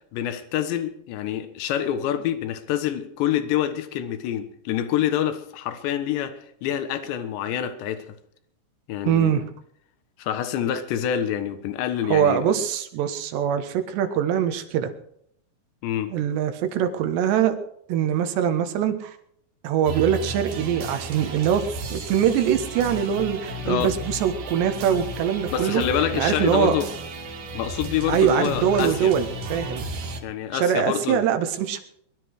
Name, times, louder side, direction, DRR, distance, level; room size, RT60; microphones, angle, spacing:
voice 1, 0.1-6.3 6.6-8.1 8.9-9.4 10.2-12.5 15.8-16.1 23.7-23.9 25.5-26.9 27.5-29.1 30.2-31.2, left 10 dB, 80° left, 9 dB, 3.5 m, -26 dB
voice 2, 9.1-9.4 12.0-14.9 16.1-17.6 17.9-19.2 19.6-25.8 26.1-26.8 28.1-29.8 30.6-31.8, right 9 dB, 80° right, 8 dB, 3.6 m, -23 dB
sound 1, 19.8-30.2, right 1 dB, 55° right, 3.1 m, -34 dB
22.0 x 12.5 x 4.8 m, 0.69 s
omnidirectional pair, 5.0 m